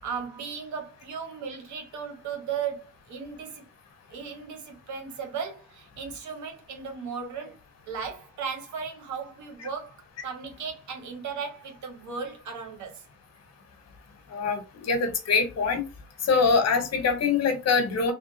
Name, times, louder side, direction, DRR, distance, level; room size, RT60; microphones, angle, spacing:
voice 1, 0.0-3.7 4.1-7.6 7.9-13.0, right 6 dB, 70° right, 1.2 m, -36 dB
voice 2, 14.3-15.8 16.2-18.1, left 4 dB, 55° left, 1.1 m, -24 dB
3.3 x 2.2 x 2.8 m
cardioid pair, 90°, 30 cm